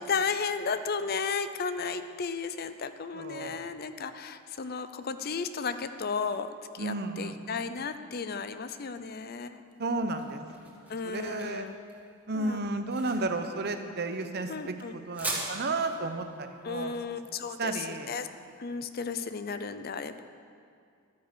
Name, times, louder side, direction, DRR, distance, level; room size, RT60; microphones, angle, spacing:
voice 1, 0.0-6.5 6.7-9.6 10.9-11.8 12.3-12.7 14.5-14.9 16.6-18.3 18.6-20.2, left 5 dB, 45° left, 11 dB, 0.5 m, -34 dB
voice 2, 3.1-3.7 6.8-7.4 9.8-10.7 11.0-11.7 12.3-16.9 17.6-18.1, right 2 dB, 50° right, 7 dB, 0.9 m, -33 dB
sound 1, 9.7-18.7, right 2 dB, 10° right, 2.0 m, -42 dB
12.5 x 9.6 x 6.8 m, 2.3 s
head